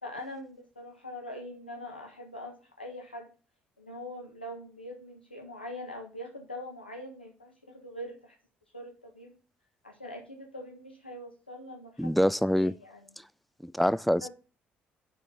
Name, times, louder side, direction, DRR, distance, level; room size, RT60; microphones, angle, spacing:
voice 1, 0.0-3.3 3.8-8.4 8.7-9.4 9.8-13.1 14.2-14.3, left 1 dB, 90° left, 1.5 m, -43 dB
voice 2, 12.0-12.7 13.6-14.3, equal, ahead, 0.4 m, -25 dB
9.0 x 6.4 x 3.7 m
figure-of-eight pair, 50°, 5 cm